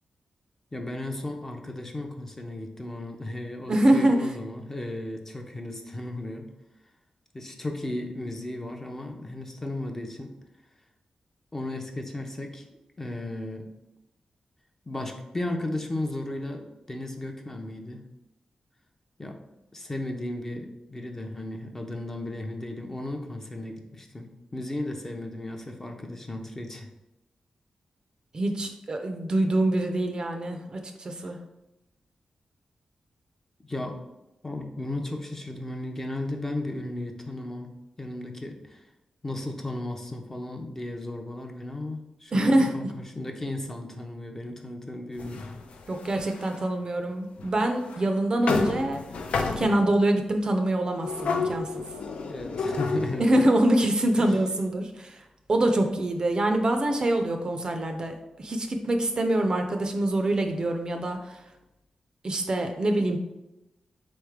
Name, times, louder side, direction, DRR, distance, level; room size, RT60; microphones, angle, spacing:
voice 1, 0.7-6.5 7.3-10.3 11.5-12.6 13.0-13.7 14.9-18.0 19.2-19.4 19.7-26.9 33.6-34.0 34.4-37.7 38.0-38.8 39.2-45.5 52.3-53.3 54.2-54.3, left 1 dB, 20° left, 2 dB, 0.6 m, -35 dB
voice 2, 3.7-4.3 28.3-31.4 42.3-42.7 45.9-49.0 49.6-51.8 53.2-55.2 55.5-61.4 62.2-63.2, right 1 dB, 40° right, 5 dB, 0.4 m, -25 dB
sound 1, 45.2-46.6 47.4-47.5 47.9-48.0 48.5-50.0 51.0-53.3, left 4 dB, 80° left, 0.5 m, -30 dB
3.9 x 3.2 x 3.5 m, 0.93 s
wide cardioid pair, 105°, 2 cm